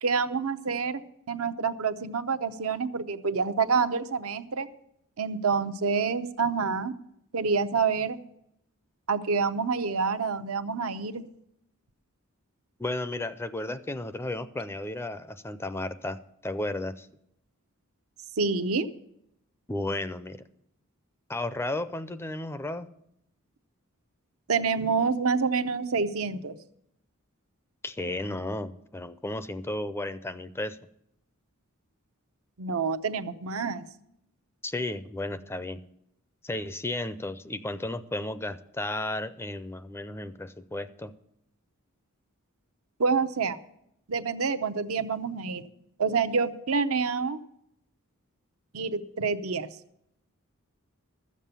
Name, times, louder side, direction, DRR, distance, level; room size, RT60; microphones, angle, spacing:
voice 1, 0.0-1.0 1.3-4.7 5.2-6.9 7.3-8.2 9.1-11.2 18.4-18.9 24.5-26.6 32.6-33.8 43.0-43.6 44.1-45.6 46.0-47.4 48.7-49.7, right 5 dB, 75° right, 10 dB, 0.8 m, -27 dB
voice 2, 12.8-17.1 19.7-20.4 21.3-22.9 27.8-30.8 34.6-35.8 36.4-41.1, left 2 dB, 10° left, 12 dB, 0.4 m, -33 dB
13.0 x 7.4 x 6.8 m, 0.77 s
head